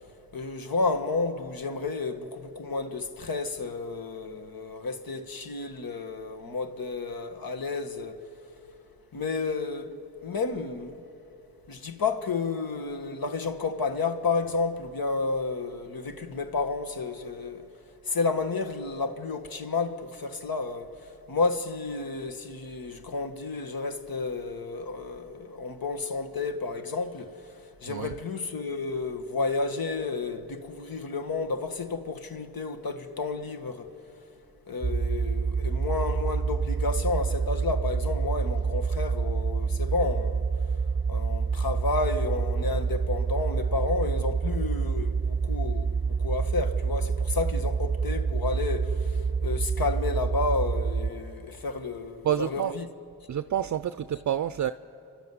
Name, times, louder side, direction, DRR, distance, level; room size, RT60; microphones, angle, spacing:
voice 1, 0.3-8.2 9.1-9.9 10.2-11.0 11.7-17.6 18.1-20.9 21.3-27.3 27.8-33.9 34.7-40.4 41.1-52.9, left 3 dB, 55° left, 1.6 m, -31 dB
sound 1, 34.8-51.1, right 5 dB, 20° right, 0.9 m, -27 dB
voice 2, 52.2-52.7 53.3-54.7, right 10 dB, 45° right, 0.6 m, -28 dB
29.5 x 12.0 x 9.5 m
supercardioid pair, 45°, 41 cm